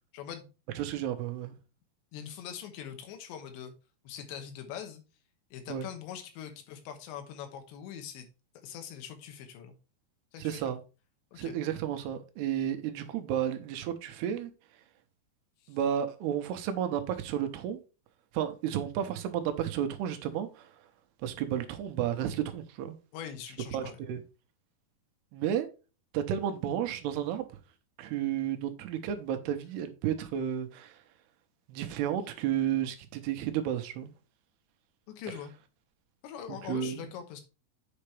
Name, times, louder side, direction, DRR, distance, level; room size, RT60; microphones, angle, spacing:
voice 1, 0.1-0.5 2.1-3.7 4.0-5.0 5.5-8.3 8.6-9.8 10.3-10.7 11.3-11.6 15.6-15.8 23.1-24.0 35.1-35.5 36.2-37.4, left 9 dB, 85° left, 3.5 m, -42 dB
voice 2, 0.8-1.5 5.7-5.9 10.4-10.8 11.4-14.5 15.7-17.8 18.3-20.7 21.2-23.0 23.7-24.2 25.3-25.7 26.1-27.5 28.0-31.0 31.7-34.1 36.5-37.1, right 10 dB, 75° right, 2.8 m, -32 dB
8.7 x 5.7 x 3.3 m
omnidirectional pair, 5.1 m